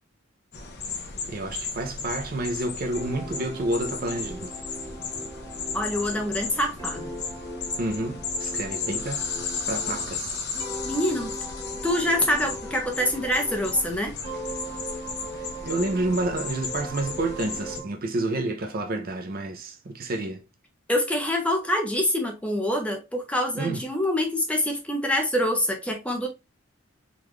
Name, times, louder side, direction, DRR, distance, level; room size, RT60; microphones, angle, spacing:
sound 1, 0.5-17.8, left 5 dB, 55° left, 0.8 m, -35 dB
voice 1, 1.3-4.5 7.8-9.2 9.7-10.4 15.6-20.4 23.5-23.8, right 2 dB, 45° right, 0.5 m, -29 dB
sound 2, 2.9-10.2 10.5-13.9 14.2-17.9, right 1 dB, 25° right, 0.9 m, -39 dB
voice 2, 5.7-7.1 10.8-11.3 11.8-14.2 20.9-26.3, left 1 dB, 5° left, 0.7 m, -25 dB
3.7 x 2.4 x 3.0 m
head